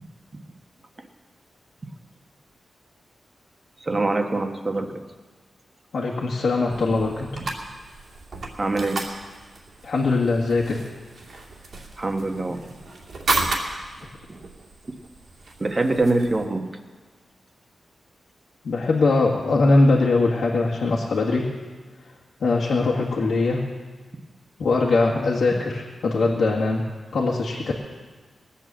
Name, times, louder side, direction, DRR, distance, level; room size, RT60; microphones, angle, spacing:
voice 1, 3.8-5.0 7.4-7.5 8.6-9.0 12.0-12.6 15.6-16.6, right 2 dB, 30° right, 4 dB, 1.4 m, -24 dB
voice 2, 5.9-7.3 9.8-10.8 18.6-21.5 22.4-23.7 24.6-26.8 27.1-27.7, left 3 dB, 75° left, -4 dB, 1.9 m, -21 dB
sound 1, 6.7-16.4, right 3 dB, 65° right, 2.6 m, -33 dB
19.0 x 8.6 x 7.5 m, 1.4 s
wide cardioid pair, 115°, 0 cm